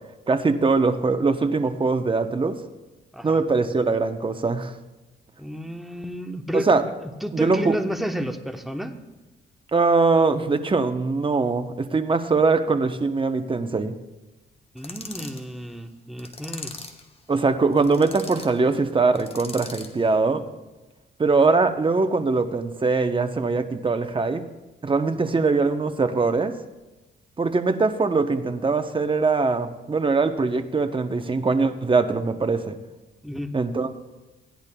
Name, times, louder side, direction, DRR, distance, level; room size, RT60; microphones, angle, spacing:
voice 1, 0.3-2.6 3.2-4.7 6.5-6.8 7.3-7.8 9.7-13.9 17.3-20.4 21.2-24.4 24.8-26.5 27.4-32.8 33.5-34.0, right 4 dB, 25° right, 8 dB, 0.8 m, -22 dB
voice 2, 5.4-6.7 7.2-8.9 14.7-16.7 33.2-33.5, equal, ahead, 5 dB, 0.9 m, -31 dB
sound 1, 14.8-15.4 16.2-17.0 17.7-18.5 19.1-20.0, left 3 dB, 30° left, 1.2 m, -39 dB
16.5 x 10.5 x 2.3 m, 1.1 s
cardioid pair, 80°, 19 cm